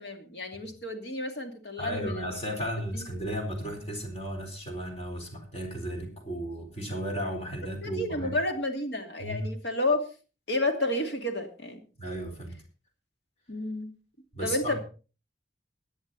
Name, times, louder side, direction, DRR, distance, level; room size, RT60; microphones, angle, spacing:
voice 1, 0.0-2.3 2.9-3.1 7.8-10.1 10.5-11.8 13.5-13.9 14.4-14.8, left 1 dB, 60° left, 4 dB, 2.6 m, -31 dB
voice 2, 1.8-8.4 9.2-9.5 12.0-12.6 14.3-14.8, equal, 35° left, 3 dB, 4.0 m, -34 dB
17.0 x 10.5 x 4.1 m, 0.36 s
head